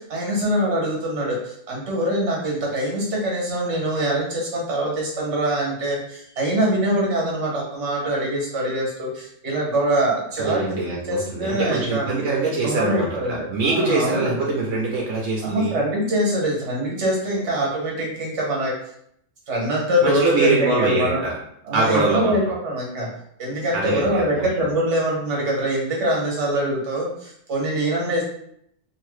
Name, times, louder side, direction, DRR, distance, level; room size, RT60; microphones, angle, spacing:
voice 1, 0.0-12.0 12.5-14.4 15.4-18.7 19.5-21.2 21.7-23.1 23.4-28.2, right 1 dB, 70° right, -3 dB, 1.4 m, -24 dB
voice 2, 10.4-15.8 20.0-21.3 21.7-22.3 23.7-24.4, right 3 dB, 90° right, -3 dB, 1.1 m, -23 dB
2.8 x 2.8 x 3.1 m, 0.70 s
omnidirectional pair, 1.2 m